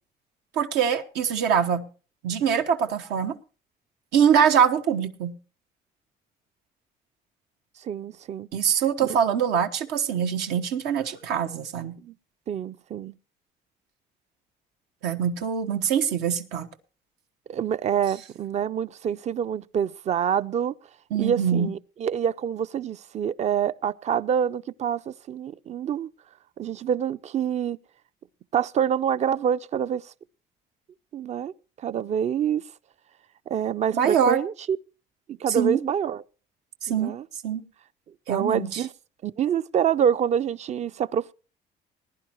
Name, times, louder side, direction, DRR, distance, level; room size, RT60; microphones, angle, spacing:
voice 1, 0.5-1.9 2.2-3.4 4.1-5.4 8.5-12.0 15.0-16.7 21.1-21.7 33.9-34.4 35.5-35.8 36.8-37.1 37.4-37.6 38.3-38.8, right 8 dB, 85° right, 1.2 m, -23 dB
voice 2, 7.8-8.5 12.0-12.1 12.5-13.1 17.5-20.7 21.2-26.1 26.6-27.8 28.5-30.0 31.1-31.5 31.8-32.6 33.5-34.8 35.3-36.2 36.9-37.3 38.3-38.9 39.2-41.3, right 8 dB, 40° right, 0.5 m, -26 dB
20.0 x 10.5 x 3.0 m
cardioid pair, 110°, 17 cm